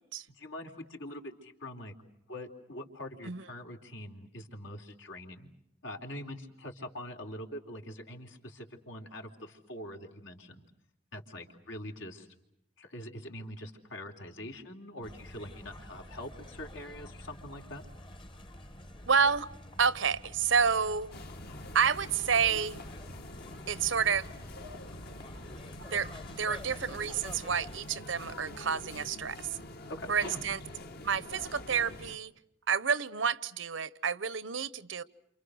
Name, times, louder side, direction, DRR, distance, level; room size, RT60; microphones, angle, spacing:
voice 1, 0.4-1.9 2.3-5.5 5.8-10.7 11.1-12.3 12.8-17.9 29.9-30.4, left 1 dB, 75° left, 3 dB, 3.6 m, -44 dB
sound 1, 15.0-27.8, left 1 dB, 25° left, 1.2 m, -48 dB
voice 2, 19.1-19.5 19.8-21.1 21.7-22.8 23.7-24.3 25.9-26.1 26.4-29.6 30.1-30.6 31.0-32.3 32.7-35.0, right 6 dB, 80° right, 18 dB, 1.0 m, -29 dB
sound 2, 21.1-32.2, left 2 dB, 55° left, 1.5 m, -46 dB
29.0 x 28.0 x 6.4 m, 0.77 s
head